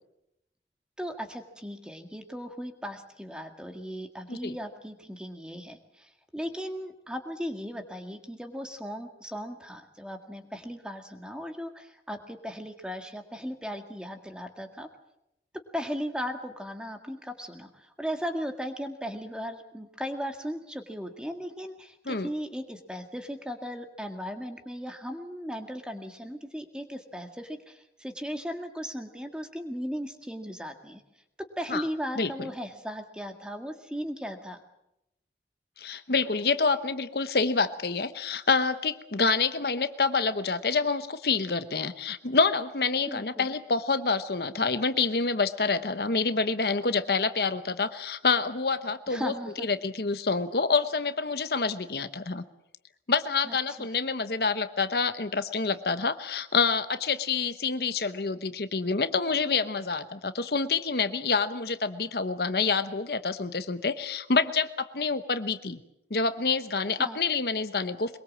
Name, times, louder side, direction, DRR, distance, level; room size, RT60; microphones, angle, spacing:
voice 1, 1.0-14.9 15.7-31.0 31.6-34.6 43.0-43.5 49.1-49.7 53.4-53.9 67.0-67.2, equal, 5° right, 5 dB, 1.9 m, -37 dB
voice 2, 32.2-32.5 35.8-52.4 53.1-65.8 66.1-68.2, left 4 dB, 65° left, 11 dB, 1.0 m, -27 dB
23.0 x 22.0 x 7.4 m, 0.83 s
head